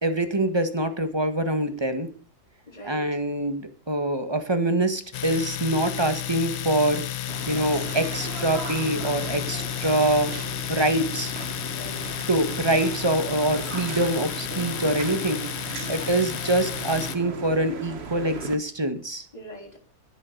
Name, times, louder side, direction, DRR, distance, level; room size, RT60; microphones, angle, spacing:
voice 1, 0.0-2.1 2.8-7.0 7.5-10.3 10.7-11.3 12.3-19.2, right 1 dB, 15° right, 8 dB, 1.5 m, -25 dB
voice 2, 2.7-3.1 11.6-12.2 15.8-16.1 19.3-19.8, right 1 dB, 20° left, 4 dB, 4.0 m, -43 dB
Domestic sounds home sounds, 5.1-17.2, left 12 dB, 65° left, 1.4 m, -32 dB
sound 1, 7.3-18.6, right 5 dB, 40° right, 1.3 m, -37 dB
12.0 x 11.0 x 6.7 m, 0.42 s
omnidirectional pair, 2.0 m